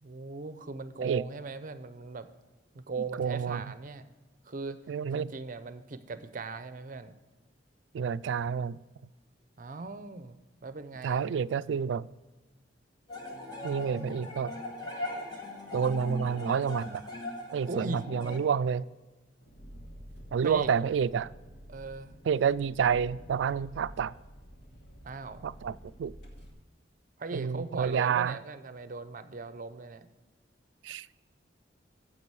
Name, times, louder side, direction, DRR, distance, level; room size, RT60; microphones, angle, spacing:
voice 1, 0.0-2.3 2.7-4.1 4.4-4.8 5.1-7.1 9.6-10.4 10.6-11.3 17.7-18.0 20.4-20.9 21.7-22.1 25.0-25.4 27.2-30.1, right 4 dB, 50° right, 0.6 m, -39 dB
voice 2, 3.2-3.6 4.9-5.3 7.9-8.8 11.0-12.1 13.6-14.5 15.7-17.1 17.5-18.9 20.3-21.3 22.3-24.1 25.4-26.1 27.3-28.4 30.8-31.1, right 7 dB, 80° right, 0.3 m, -29 dB
sound 1, 13.1-18.4, left 1 dB, 25° left, 2.0 m, -39 dB
Engine, 19.4-26.5, equal, 65° left, 2.4 m, -50 dB
9.8 x 7.5 x 4.7 m
head